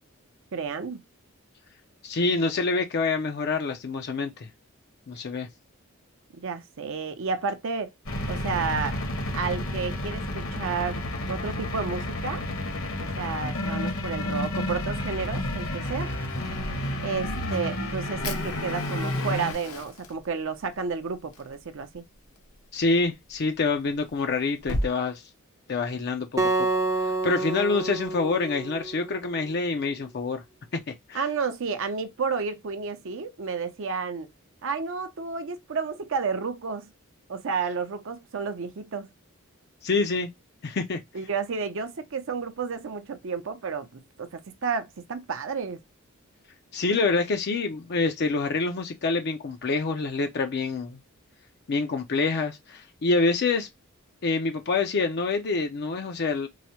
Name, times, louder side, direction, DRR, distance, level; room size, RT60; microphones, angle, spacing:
voice 1, 0.5-1.0 6.3-7.9 8.3-9.0 9.3-12.4 13.0-16.1 17.0-22.0 31.1-34.3 34.6-36.9 37.3-39.1 41.1-45.8, right 5 dB, 60° right, 0.6 m, -31 dB
voice 2, 2.0-4.5 5.1-5.5 22.7-25.2 25.7-26.7 26.9-30.4 30.7-31.3 39.8-40.3 40.6-41.0 46.7-51.0 51.7-53.7 54.2-56.5, left 3 dB, 50° left, 0.5 m, -26 dB
sound 1, 8.1-19.5, left 1 dB, 70° left, 1.3 m, -31 dB
Fire, 18.2-24.9, left 1 dB, 85° left, 1.0 m, -38 dB
Acoustic guitar, 26.4-29.6, right 2 dB, 15° right, 0.5 m, -28 dB
4.6 x 2.0 x 2.8 m
head